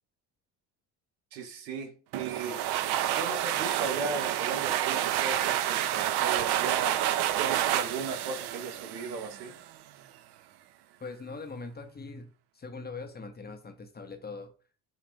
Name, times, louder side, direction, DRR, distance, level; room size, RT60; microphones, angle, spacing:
voice 1, 1.3-2.6 3.1-7.0 7.4-9.5, right 4 dB, 85° right, 5 dB, 0.9 m, -37 dB
sound 1, 2.1-9.6, right 12 dB, 55° right, 0.5 m, -29 dB
voice 2, 11.0-14.5, left 4 dB, 20° left, 7 dB, 0.6 m, -42 dB
4.0 x 2.4 x 3.4 m, 0.37 s
hypercardioid pair, 60°, 50 cm